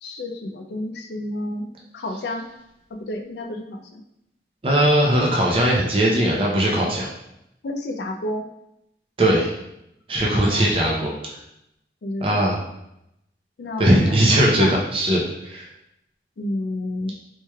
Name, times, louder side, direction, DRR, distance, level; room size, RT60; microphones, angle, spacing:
voice 1, 0.0-2.5 2.9-4.0 7.6-8.5 10.2-10.7 12.0-12.5 13.6-14.2 14.6-14.8 16.4-17.1, left 1 dB, 75° left, 4 dB, 0.4 m, -30 dB
voice 2, 4.6-7.1 9.2-9.5 10.1-11.1 12.2-12.6 13.8-15.7, right 1 dB, 30° right, -3 dB, 0.5 m, -19 dB
4.4 x 3.1 x 2.2 m, 0.83 s
head